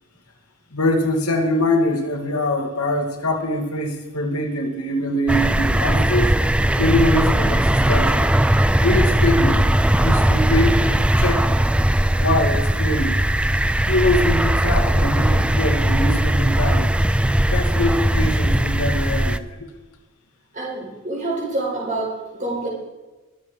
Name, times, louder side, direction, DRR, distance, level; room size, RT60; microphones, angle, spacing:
voice 1, 0.7-6.4 6.8-8.3 8.8-9.6 10.0-10.9 11.2-11.5 12.2-13.2 13.9-16.9 17.5-19.4, left 1 dB, 80° left, 3 dB, 2.3 m, -23 dB
sound 1, 5.3-19.4, right 1 dB, 5° right, 0.3 m, -19 dB
voice 2, 20.5-22.7, right 2 dB, 35° right, -3 dB, 5.1 m, -27 dB
22.5 x 7.9 x 5.0 m, 1.2 s
head